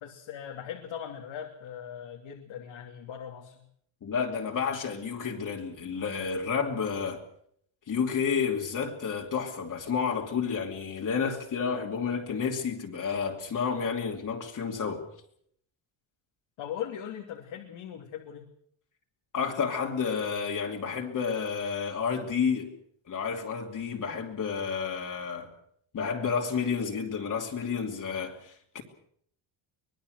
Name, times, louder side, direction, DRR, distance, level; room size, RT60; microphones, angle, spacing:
voice 1, 0.0-3.6 16.6-18.5, left 9 dB, 70° left, 3.0 m, -39 dB
voice 2, 4.0-7.2 7.9-15.1 19.3-22.7 23.1-25.5 25.9-28.8, left 6 dB, 40° left, 2.8 m, -30 dB
24.5 x 20.5 x 6.5 m
cardioid pair, 155°, 48 cm